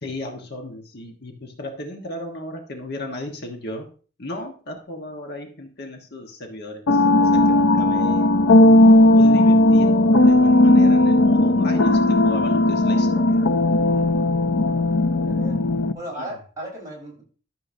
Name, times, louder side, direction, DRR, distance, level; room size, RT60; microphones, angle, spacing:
voice 1, 0.0-3.9 4.2-7.0 7.3-8.5 9.1-13.4 16.2-16.3, left 1 dB, 55° left, 1.4 m, -35 dB
sound 1, 6.9-15.9, left 1 dB, 85° left, 0.7 m, -16 dB
voice 2, 13.7-14.1 15.2-15.6 15.9-17.2, right 1 dB, 20° right, 4.7 m, -36 dB
13.5 x 6.8 x 2.7 m
head